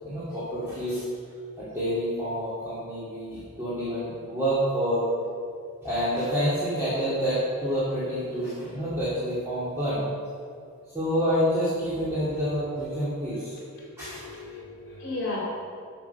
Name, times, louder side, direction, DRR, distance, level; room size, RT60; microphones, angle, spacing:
voice 1, 0.0-1.0 1.6-5.0 5.8-10.1 10.9-13.6 14.0-14.2, equal, 15° right, -13 dB, 2.6 m, -28 dB
voice 2, 13.3-15.4, left 2 dB, 50° left, -6 dB, 3.0 m, -37 dB
11.0 x 7.1 x 5.6 m, 2.3 s
head